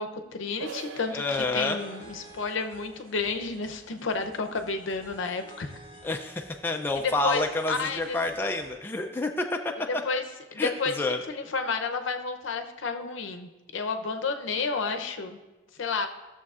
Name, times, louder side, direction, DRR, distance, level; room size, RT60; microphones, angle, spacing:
voice 1, 0.0-5.7 7.0-8.2 9.9-10.2 10.5-10.9 11.3-15.4 15.8-16.1, left 4 dB, 80° left, 7 dB, 0.6 m, -31 dB
sound 1, 0.6-6.1, right 6 dB, 80° right, 0.4 m, -46 dB
voice 2, 1.1-1.8 6.0-9.7 10.6-11.2, left 2 dB, 10° left, 3 dB, 0.3 m, -29 dB
sound 2, 1.3-8.7, right 1 dB, 40° right, 2.4 m, -51 dB
13.5 x 6.8 x 2.4 m, 1.1 s
head